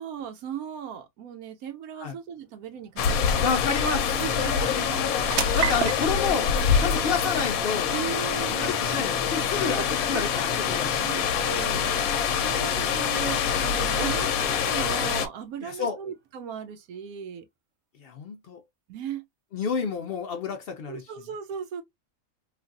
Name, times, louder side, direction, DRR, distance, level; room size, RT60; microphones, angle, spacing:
voice 1, 0.0-3.5 4.1-4.9 5.5-5.7 6.8-7.3 7.9-8.8 9.6-10.2 10.6-17.5 18.9-19.2 20.9-21.8, right 8 dB, 85° right, 1.1 m, -37 dB
sound 1, 1.9-16.8, right 8 dB, 65° right, 0.7 m, -40 dB
sound 2, 3.0-15.3, left 7 dB, 80° left, 1.0 m, -25 dB
voice 2, 3.4-5.1 5.5-8.3 8.6-10.9 13.9-14.0 15.6-16.0 18.0-18.6 19.5-21.0, left 5 dB, 65° left, 0.6 m, -30 dB
3.2 x 2.4 x 2.4 m
omnidirectional pair, 1.5 m